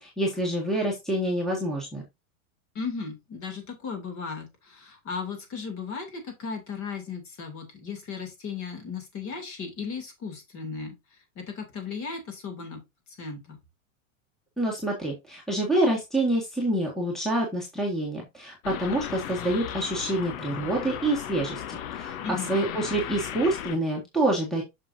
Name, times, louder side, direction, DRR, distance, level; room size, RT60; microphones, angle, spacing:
voice 1, 0.0-2.0 14.6-24.6, right 1 dB, ahead, -1 dB, 1.7 m, -27 dB
voice 2, 2.7-12.8 13.2-13.6 22.2-22.5, left 5 dB, 30° left, 5 dB, 2.8 m, -36 dB
sound 1, 18.6-23.8, left 10 dB, 70° left, 1.1 m, -36 dB
7.3 x 6.5 x 2.7 m, 0.21 s
supercardioid pair, 160°, 42 cm